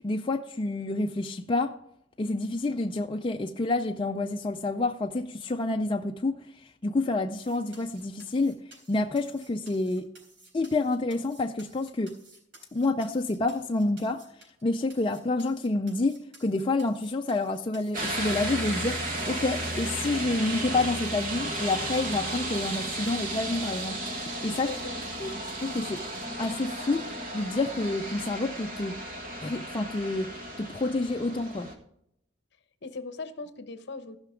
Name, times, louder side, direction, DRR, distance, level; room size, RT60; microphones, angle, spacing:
voice 1, 0.0-1.8 2.2-10.1 10.5-12.2 12.7-24.7 25.2-26.1 26.4-29.0 29.4-31.7, left 2 dB, 25° left, 0.4 m, -29 dB
sound 1, 7.3-14.6 14.9-20.0 20.6-20.7 21.1-21.2 21.5-27.1, right 2 dB, 60° right, 4.0 m, -55 dB
sound 2, 17.9-31.7, right 1 dB, 45° right, 1.7 m, -34 dB
voice 2, 24.6-25.1 32.8-34.2, left 3 dB, 55° left, 0.9 m, -39 dB
15.0 x 5.7 x 5.1 m
head